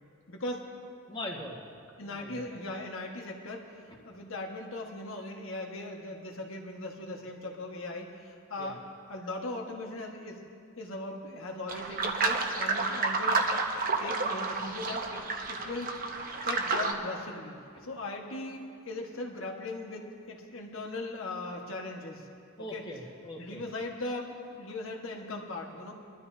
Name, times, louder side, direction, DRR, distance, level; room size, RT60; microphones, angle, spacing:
voice 1, 0.3-0.7 2.0-3.8 4.0-8.8 9.1-10.4 10.8-13.5 14.0-15.2 15.5-16.0 16.4-22.3 22.7-22.8 23.4-25.9, left 2 dB, 65° left, 1 dB, 1.5 m, -39 dB
voice 2, 1.1-1.6 2.0-2.5 8.6-8.7 22.6-23.6, left 1 dB, 25° left, -2 dB, 1.7 m, -41 dB
sound 1, 11.7-16.9, right 3 dB, 45° right, 0.9 m, -30 dB
23.0 x 12.5 x 2.8 m, 2.3 s
head